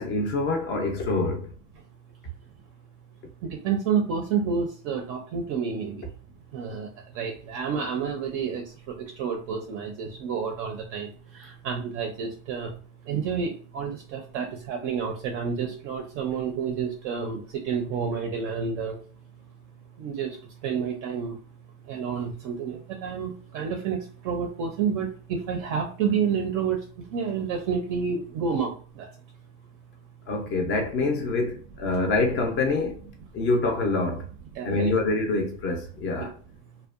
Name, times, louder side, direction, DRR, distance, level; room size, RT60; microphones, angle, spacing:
voice 1, 0.0-1.5 30.3-33.0 33.3-34.3 34.6-36.3, left 3 dB, 35° left, 0.4 m, -26 dB
voice 2, 3.4-6.0 6.5-6.9 7.2-8.6 9.2-11.1 11.3-12.7 13.1-19.0 20.0-20.4 20.6-21.3 21.9-26.8 27.1-29.1 34.6-34.9, right 6 dB, 40° right, 0.4 m, -29 dB
2.7 x 2.1 x 2.4 m
cardioid pair, 160°, 36 cm